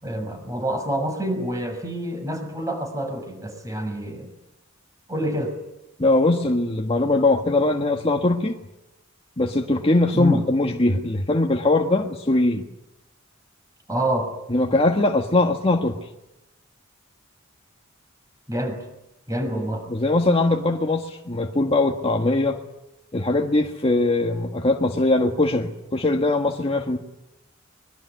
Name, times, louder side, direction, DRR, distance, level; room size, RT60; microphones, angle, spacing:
voice 1, 0.0-4.3 5.1-5.5 10.1-10.4 13.9-14.3 18.5-18.8 19.3-19.8, right 1 dB, 15° right, 6 dB, 6.5 m, -27 dB
voice 2, 6.0-8.6 9.4-12.6 14.5-16.0 19.5-19.6 19.9-22.6 23.1-27.0, left 2 dB, 30° left, 2 dB, 1.6 m, -21 dB
24.5 x 22.0 x 9.6 m, 0.90 s
head